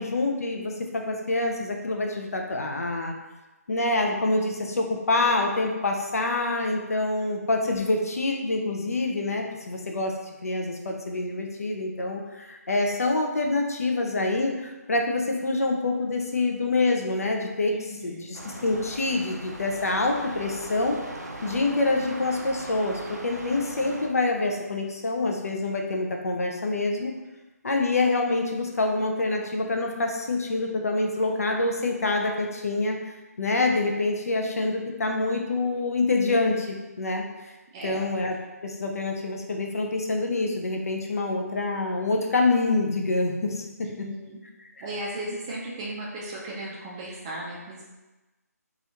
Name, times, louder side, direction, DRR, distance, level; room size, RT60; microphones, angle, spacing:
voice 1, 0.0-3.1 3.7-10.1 10.4-17.7 18.0-21.0 21.4-27.1 27.6-33.0 33.4-37.2 37.8-38.4 38.6-43.6, left 2 dB, 60° left, 2 dB, 0.5 m, -26 dB
voice 2, 17.7-18.3 37.7-38.0 43.8-44.4 44.8-47.9, right 1 dB, 20° right, -4 dB, 0.4 m, -36 dB
sound 1, 18.3-24.1, right 2 dB, 80° right, 0.5 m, -39 dB
3.0 x 2.4 x 2.9 m, 1.1 s
figure-of-eight pair, 145°, 9 cm